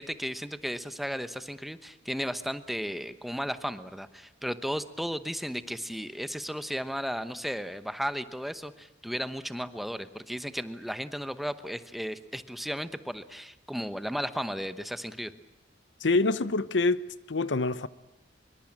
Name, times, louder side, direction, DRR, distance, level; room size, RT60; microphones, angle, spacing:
voice 1, 0.0-15.3, equal, ahead, 1.0 m, -35 dB
voice 2, 16.0-17.9, left 3 dB, 90° left, 0.9 m, -26 dB
25.0 x 23.0 x 8.8 m
head